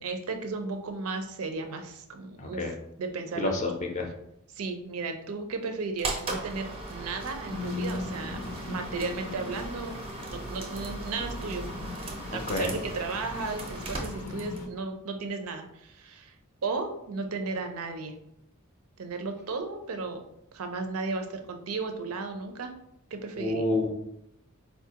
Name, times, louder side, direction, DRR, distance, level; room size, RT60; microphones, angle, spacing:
voice 1, 0.0-3.6 4.5-8.4 8.7-10.0 10.3-11.6 12.3-16.3 16.6-18.2 19.0-20.2 20.5-22.7 23.1-23.7, right 3 dB, 90° right, 6 dB, 0.5 m, -34 dB
voice 2, 2.4-2.7 3.4-3.7 4.0-4.1 12.5-12.7 23.4-23.9, left 2 dB, 35° left, 2 dB, 0.4 m, -28 dB
sound 1, 6.0-14.7, right 2 dB, 25° right, 0.4 m, -38 dB
sound 2, 7.5-14.7, left 2 dB, 85° left, 0.5 m, -39 dB
4.2 x 2.3 x 2.8 m, 0.78 s
head